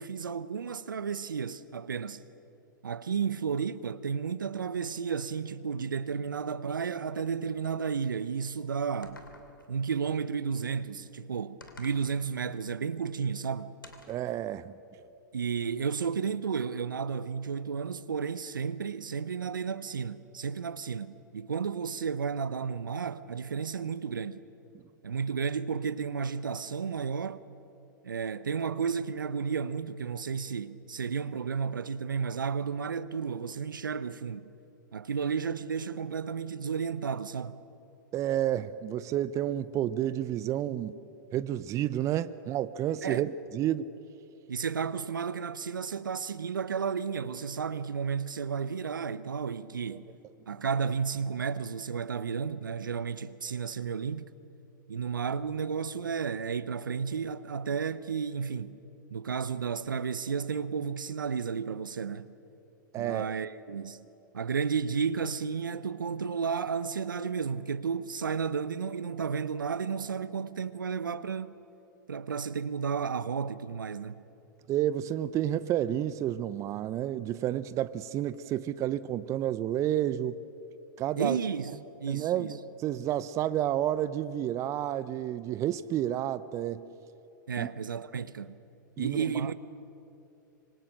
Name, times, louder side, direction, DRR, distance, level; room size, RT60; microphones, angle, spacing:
voice 1, 0.0-2.2 2.8-9.2 9.7-13.7 15.3-24.5 25.0-27.4 28.0-34.5 34.9-37.5 43.0-43.3 44.5-50.1 50.5-54.3 54.9-58.8 59.1-62.3 63.0-64.0 64.3-71.5 72.1-74.2 81.2-82.6 87.5-88.6 89.0-89.6, right 6 dB, 80° right, 0.9 m, -32 dB
sound 1, 9.0-9.7 11.6-12.1 13.8-14.3, left 3 dB, 90° left, 2.8 m, -50 dB
voice 2, 14.1-14.7 38.1-41.0 41.3-43.9 49.9-50.0 62.9-63.3 74.7-80.4 81.0-81.4 82.1-86.8 87.6-87.7 89.0-89.5, right 11 dB, 30° right, 0.7 m, -30 dB
26.0 x 25.5 x 6.6 m
figure-of-eight pair, 105°, 11 cm